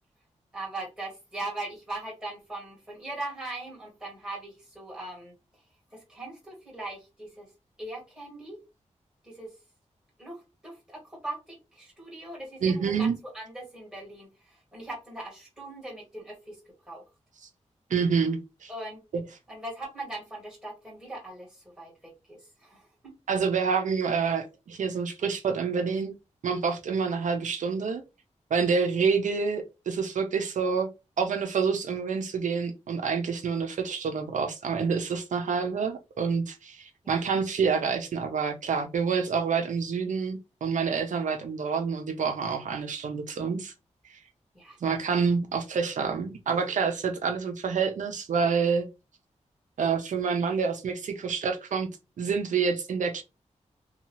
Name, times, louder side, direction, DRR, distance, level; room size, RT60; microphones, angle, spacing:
voice 1, 0.5-5.3 5.9-7.5 7.8-8.6 9.2-9.5 10.2-14.3 14.7-16.5 16.9-17.0 18.7-19.0 19.5-22.8 37.0-37.1 44.5-44.8, right 2 dB, 5° right, 1.7 m, -40 dB
voice 2, 12.6-13.2 17.9-18.7 19.1-19.2 23.3-26.1 26.4-28.0 28.5-30.9 31.2-43.7 44.8-48.9 49.8-51.9 52.2-53.2, right 5 dB, 85° right, 0.6 m, -27 dB
2.7 x 2.3 x 2.9 m
wide cardioid pair, 130°, 12 cm